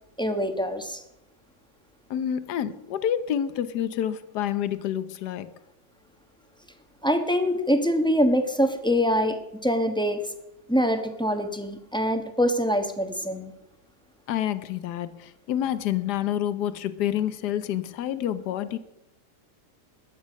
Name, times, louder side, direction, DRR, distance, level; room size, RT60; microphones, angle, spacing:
voice 1, 0.2-1.0 7.0-10.2 10.7-13.5, equal, 5° left, 1.0 m, -24 dB
voice 2, 2.1-5.5 14.3-18.8, left 10 dB, 70° left, 1.4 m, -28 dB
21.0 x 8.6 x 5.2 m
omnidirectional pair, 1.8 m